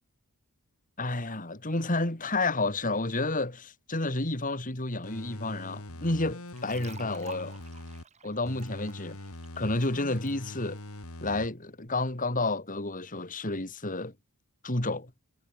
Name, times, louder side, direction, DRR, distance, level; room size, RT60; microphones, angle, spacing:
voice 1, 1.0-7.6 8.2-9.2 9.6-10.8 11.2-14.1 14.6-15.1, left 2 dB, 35° left, 3.2 m, -30 dB
sound 1, 5.0-8.0 8.5-11.5 11.9-12.0, left 1 dB, 75° left, 3.1 m, -43 dB
sound 2, 6.5-10.3, right 6 dB, 30° right, 6.6 m, -51 dB
head